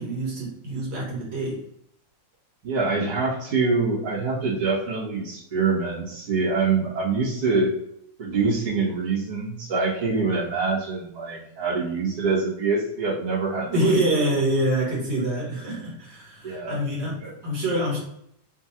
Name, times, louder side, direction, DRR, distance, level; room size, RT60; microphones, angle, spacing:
voice 1, 0.0-1.6 13.7-18.0, right 1 dB, 55° right, -5 dB, 1.7 m, -25 dB
voice 2, 2.6-7.7 8.2-13.9 16.4-16.8 17.2-17.3, right 4 dB, 75° right, -8 dB, 1.1 m, -25 dB
5.9 x 2.5 x 2.8 m, 0.73 s
omnidirectional pair, 4.6 m